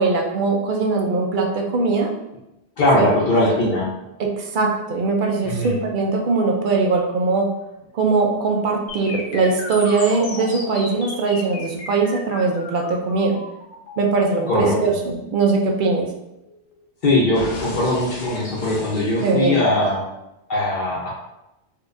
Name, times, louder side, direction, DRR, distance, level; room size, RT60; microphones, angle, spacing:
voice 1, 0.0-2.1 2.9-3.1 4.2-7.5 7.9-13.4 14.0-16.1 19.2-19.7, right 4 dB, 60° right, 1 dB, 0.6 m, -21 dB
voice 2, 2.8-3.9 5.4-5.7 14.5-14.9 17.0-20.0 20.5-21.1, left 1 dB, 55° left, -5 dB, 0.7 m, -20 dB
sound 1, 8.9-16.8 17.3-19.9, left 2 dB, 80° left, 1.0 m, -36 dB
4.2 x 2.3 x 2.5 m, 0.91 s
omnidirectional pair, 1.1 m